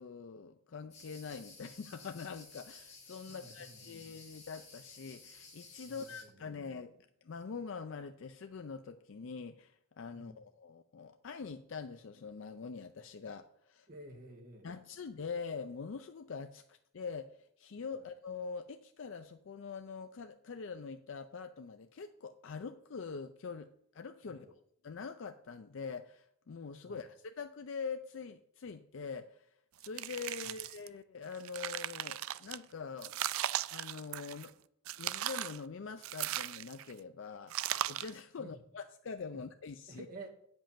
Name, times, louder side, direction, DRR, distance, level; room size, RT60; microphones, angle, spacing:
voice 1, 0.0-13.9 14.6-23.7 23.9-24.5 24.8-29.5 29.8-33.2 33.7-34.5 35.0-40.1, left 5 dB, 65° left, 8 dB, 0.4 m, -44 dB
sound 1, 0.9-6.2, left 3 dB, 30° left, 2.7 m, -54 dB
voice 2, 3.3-4.1 5.8-6.7 10.1-10.4 13.9-14.7 18.0-18.1 24.2-24.5 26.9-27.1 30.4-30.6 38.4-38.6 39.3-39.4 39.9-40.3, right 1 dB, 40° right, 1 dB, 1.7 m, -52 dB
sound 2, 29.8-30.9 31.3-32.6 33.0-34.5 34.9-35.6 36.0-36.9 37.5-38.2, right 12 dB, 80° right, 0.4 m, -37 dB
8.8 x 5.4 x 7.3 m, 0.71 s
head